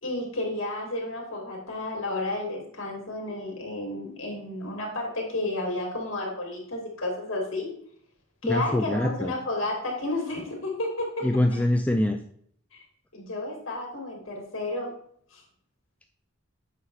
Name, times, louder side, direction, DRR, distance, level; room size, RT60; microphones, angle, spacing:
voice 1, 0.0-7.7 8.4-11.3 12.7-12.8 13.1-14.9 15.3-15.4, left 2 dB, 80° left, 0 dB, 2.6 m, -31 dB
voice 2, 8.4-9.3 11.2-12.2, left 1 dB, 5° left, 4 dB, 0.4 m, -24 dB
8.2 x 5.6 x 3.2 m, 0.62 s
head